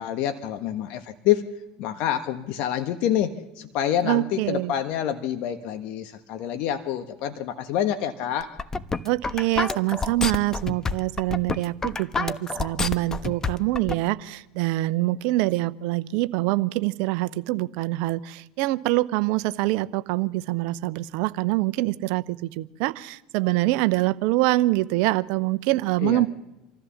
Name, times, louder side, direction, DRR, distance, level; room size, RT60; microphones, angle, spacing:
voice 1, 0.0-1.5 1.8-8.5 26.0-26.3, left 10 dB, 60° left, 8 dB, 1.3 m, -27 dB
voice 2, 4.0-4.7 9.0-26.3, right 18 dB, 65° right, 14 dB, 0.8 m, -25 dB
sound 1, 8.4-13.9, left 4 dB, 20° left, 1.1 m, -28 dB
26.0 x 14.5 x 7.2 m, 1.0 s
hypercardioid pair, 80°, 2 cm